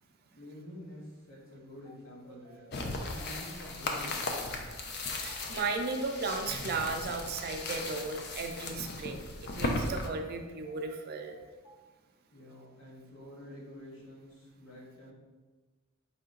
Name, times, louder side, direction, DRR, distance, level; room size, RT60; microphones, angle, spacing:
voice 1, 0.4-4.6 12.3-15.1, equal, 85° left, -3 dB, 1.3 m, -48 dB
sound 1, 1.8-11.7, equal, 30° left, 0.9 m, -58 dB
sound 2, 2.7-10.1, left 2 dB, 55° left, 0.5 m, -37 dB
voice 2, 5.2-11.4, right 4 dB, 50° right, 5 dB, 0.4 m, -35 dB
4.8 x 2.8 x 3.7 m, 1.3 s
head